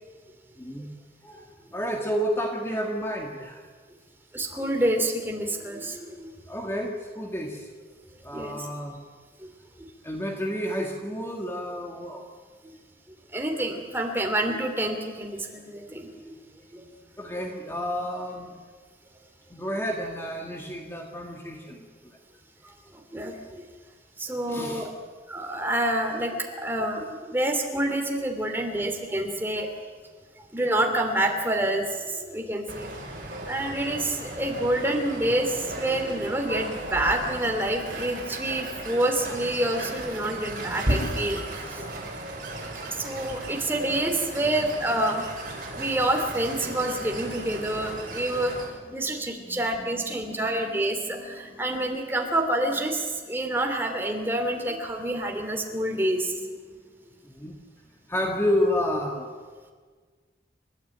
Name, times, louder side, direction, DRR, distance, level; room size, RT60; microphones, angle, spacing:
voice 1, 0.6-0.9 1.2-1.4 1.7-3.7 6.5-7.7 8.2-9.0 10.0-12.3 17.2-18.5 19.5-21.9 24.5-24.9 41.9-42.0 48.1-48.2 48.8-52.4 52.7-52.8 56.1-56.2 57.4-57.6 58.1-59.3, equal, 15° left, 1 dB, 1.9 m, -31 dB
voice 2, 4.3-6.4 8.3-8.7 9.4-9.5 12.6-12.7 13.3-16.1 16.7-16.8 23.1-23.6 24.2-24.9 25.3-29.7 30.5-32.9 33.5-41.4 41.7-41.8 42.9-45.2 45.8-48.5 48.9-56.4, right 1 dB, 10° right, 3 dB, 2.9 m, -27 dB
sound 1, 32.7-48.6, right 1 dB, 50° right, 6.8 m, -35 dB
30.0 x 14.0 x 9.2 m, 1.6 s
head